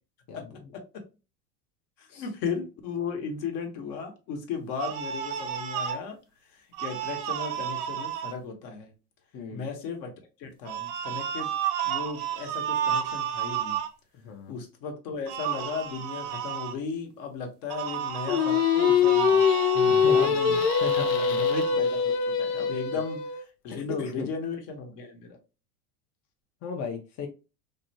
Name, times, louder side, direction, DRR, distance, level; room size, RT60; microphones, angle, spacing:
voice 1, 0.3-0.7 2.1-2.3 9.3-9.7 14.2-14.6 19.7-21.4 22.9-23.0 23.7-24.3 26.6-27.3, left 5 dB, 35° left, 0.5 m, -37 dB
voice 2, 2.0-6.2 6.5-8.9 9.5-10.1 10.4-11.5 11.8-13.8 14.5-19.4 20.0-23.2 23.6-25.3, left 5 dB, 60° left, 1.0 m, -36 dB
sound 1, 4.8-6.0 6.7-8.3 10.6-13.9 15.3-16.7 17.7-21.8, right 8 dB, 55° right, 0.7 m, -31 dB
Singing, 18.3-23.4, left 7 dB, 85° left, 0.5 m, -23 dB
2.5 x 2.1 x 2.7 m
hypercardioid pair, 95°, 47 cm